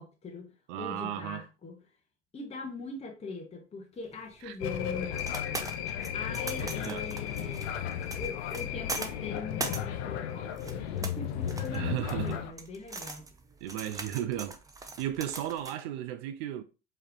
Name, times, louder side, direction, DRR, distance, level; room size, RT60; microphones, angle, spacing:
voice 1, 0.0-1.8 2.3-5.3 6.1-7.8 8.1-13.3, left 3 dB, 15° left, 1.0 m, -42 dB
voice 2, 0.7-1.4 4.4-4.6 6.6-7.1 11.7-12.4 13.6-14.6 15.0-16.6, right 12 dB, 60° right, 0.5 m, -35 dB
sound 1, 4.1-15.8, right 3 dB, 10° right, 0.5 m, -42 dB
sound 2, 4.6-12.5, left 9 dB, 65° left, 0.6 m, -34 dB
4.8 x 3.2 x 2.9 m
hypercardioid pair, 80°, 36 cm